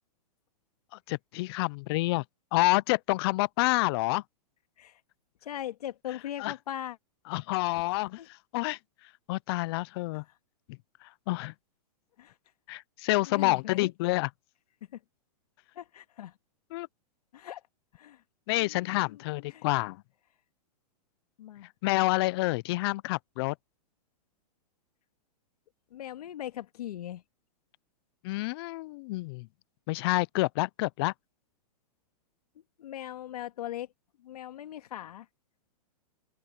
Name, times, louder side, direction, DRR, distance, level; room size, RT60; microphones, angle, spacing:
voice 1, 1.1-2.2 2.5-4.2 6.4-6.5 7.3-8.8 9.3-10.2 11.3-11.5 12.7-14.3 16.7-16.9 18.5-20.0 21.8-23.5 28.2-29.5 29.9-31.1, left 21 dB, 40° left, 0.5 m, -28 dB
voice 2, 5.4-7.0 7.7-7.8 8.2-8.3 10.1-10.2 12.2-12.3 13.3-13.9 14.9-15.0 15.8-16.3 17.3-17.6 17.9-18.2 18.6-19.2 19.5-19.7 21.4-21.7 25.9-27.2 32.8-33.9 34.2-35.3, left 12 dB, 70° left, 2.1 m, -40 dB
open air
hypercardioid pair, 145°, 20 cm